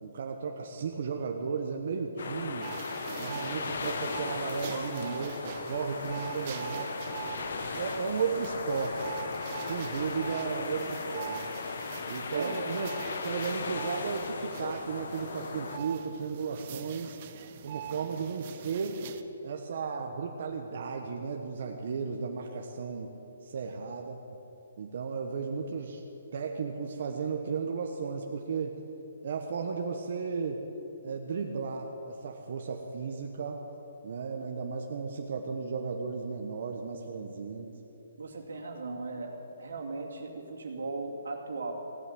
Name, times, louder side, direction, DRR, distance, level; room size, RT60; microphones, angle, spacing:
voice 1, 0.0-2.7 3.2-6.9 7.8-9.1 9.6-11.4 12.1-12.9 13.2-17.2 17.6-19.0 19.4-23.1 23.4-24.2 24.8-26.0 26.3-28.8 29.2-30.6 31.0-33.6 34.0-37.8, right 5 dB, 50° right, 2 dB, 1.1 m, -34 dB
sound 1, 2.2-15.8, left 4 dB, 60° left, 1.2 m, -37 dB
sound 2, 2.6-19.2, right 8 dB, 35° right, 0.7 m, -44 dB
voice 2, 38.2-41.7, right 3 dB, 90° right, 1 dB, 2.5 m, -37 dB
16.0 x 8.2 x 9.2 m, 2.9 s
hypercardioid pair, 165°, 0 cm